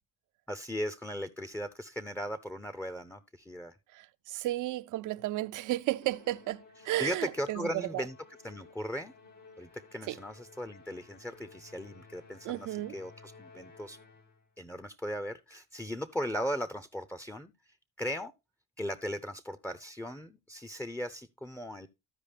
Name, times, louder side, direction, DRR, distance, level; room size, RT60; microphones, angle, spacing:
voice 1, 0.5-3.7 4.3-4.5 7.0-8.2 8.4-9.1 9.6-14.0 14.6-18.3 18.8-21.9, equal, 5° left, 0.6 m, -38 dB
voice 2, 3.9-8.1 10.1-10.2 12.4-13.0, right 16 dB, 70° right, 0.6 m, -33 dB
Musical instrument, 6.0-14.5, left 4 dB, 80° left, 3.0 m, -56 dB
14.5 x 4.9 x 3.4 m
supercardioid pair, 80°, 32 cm